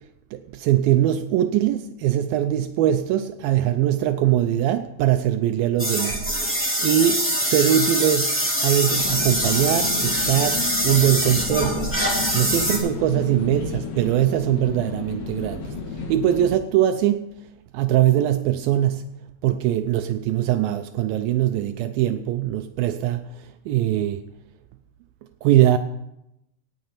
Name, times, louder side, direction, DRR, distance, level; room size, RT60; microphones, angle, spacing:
voice 1, 0.3-6.3 6.8-11.9 12.3-15.7 16.1-17.3 17.7-19.1 19.4-24.2 25.4-25.8, right 12 dB, 90° right, 8 dB, 2.0 m, -22 dB
sound 1, 5.8-12.8, right 1 dB, 5° left, 2.0 m, -24 dB
sound 2, 8.9-16.5, left 5 dB, 65° left, 3.4 m, -32 dB
17.5 x 7.7 x 5.7 m, 0.86 s
omnidirectional pair, 4.9 m